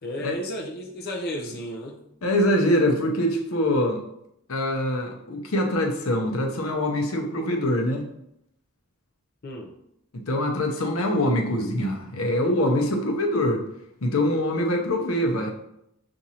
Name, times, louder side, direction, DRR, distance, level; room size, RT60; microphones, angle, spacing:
voice 1, 0.0-2.0 9.4-9.7, equal, 50° left, 1 dB, 0.5 m, -33 dB
voice 2, 2.2-4.0 4.5-8.0 10.3-13.6 14.0-15.5, left 1 dB, 85° left, 2 dB, 0.7 m, -24 dB
6.0 x 2.6 x 2.8 m, 0.78 s
head